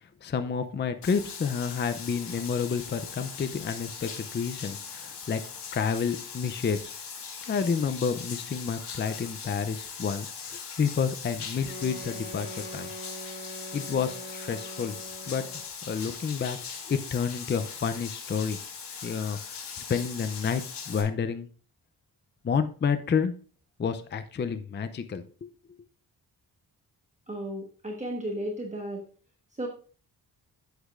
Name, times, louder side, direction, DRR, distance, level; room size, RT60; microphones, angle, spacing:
voice 1, 0.2-5.4 5.7-6.9 7.5-12.5 12.7-12.9 13.7-15.0 15.3-18.6 19.0-19.6 19.9-21.5 22.4-23.3 23.8-25.5, left 6 dB, 30° left, 10 dB, 0.4 m, -30 dB
Bathtub (filling or washing), 1.0-21.0, left 6 dB, 80° left, 1.6 m, -40 dB
Wind instrument woodwind instrument, 11.6-15.7, right 1 dB, 35° right, 3.8 m, -43 dB
voice 2, 27.3-29.0 29.5-29.7, right 1 dB, 20° right, 0 dB, 1.2 m, -34 dB
8.4 x 8.0 x 2.4 m, 0.39 s
wide cardioid pair, 150°, 40 cm